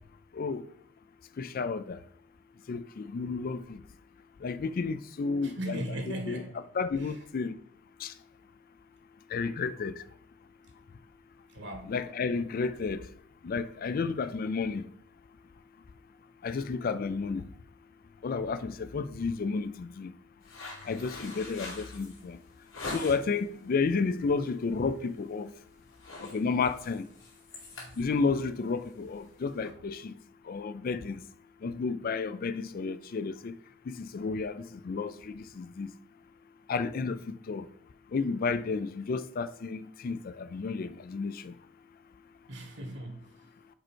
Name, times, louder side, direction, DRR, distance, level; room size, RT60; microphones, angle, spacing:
voice 1, 1.4-2.0 2.7-3.8 4.4-6.4 6.7-7.6 8.0-8.1 9.3-10.0 11.8-13.0 13.4-14.9 16.4-17.4 18.2-20.1 20.9-22.4 22.9-25.5 26.2-27.1 28.0-30.1 30.5-31.2 31.6-33.5 33.9-35.9 36.7-37.7 38.1-41.5, left 4 dB, 45° left, 0.4 m, -32 dB
voice 2, 5.4-6.6 7.0-7.1 11.5-11.9 27.7-27.9 42.5-43.3, right 1 dB, 60° right, 1.6 m, -38 dB
sound 1, 20.4-23.4 23.9-24.2 24.6-24.8 25.1-25.5 25.8-29.7, left 2 dB, 80° left, 2.3 m, -44 dB
5.1 x 4.5 x 4.4 m
head